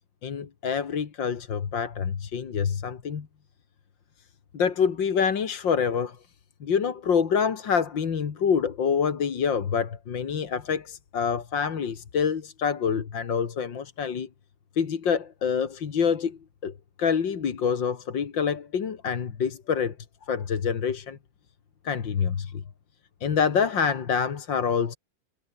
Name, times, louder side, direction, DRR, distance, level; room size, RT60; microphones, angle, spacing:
voice 1, 0.2-3.3 4.5-6.2 6.6-14.3 14.8-16.7 17.0-20.0 20.3-21.2 21.8-22.6 23.2-25.0, left 6 dB, 80° left, 2.6 m, -26 dB
omnidirectional pair, 2.0 m